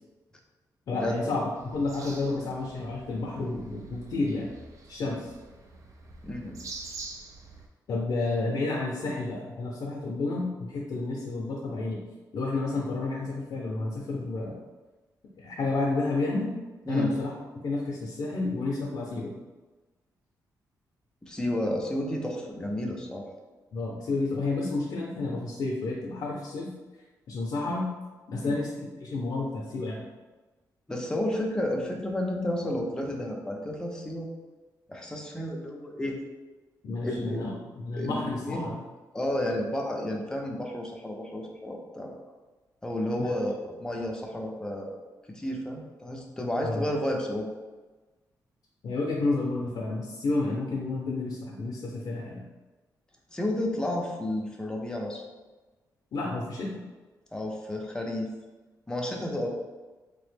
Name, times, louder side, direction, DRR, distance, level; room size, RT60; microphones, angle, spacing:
voice 1, 0.9-4.5 4.9-5.3 7.9-12.0 12.3-14.6 15.4-16.5 16.9-17.3 17.6-19.3 23.7-26.7 27.3-27.9 28.3-30.0 36.8-38.8 43.2-43.3 46.6-46.8 48.8-52.5 56.1-56.8, left 3 dB, 65° left, -3 dB, 0.5 m, -30 dB
sound 1, 1.5-7.7, right 3 dB, 50° right, 0.4 m, -46 dB
voice 2, 6.2-6.6 16.9-17.1 21.2-23.3 28.4-28.5 30.9-34.3 34.9-36.2 37.0-37.5 37.9-38.2 38.4-38.7 39.1-42.1 42.8-44.9 45.3-47.5 53.3-55.2 57.3-58.3 58.9-59.5, left 1 dB, 10° left, 0 dB, 0.5 m, -31 dB
3.2 x 2.0 x 3.2 m, 1.2 s
cardioid pair, 120°, 7 cm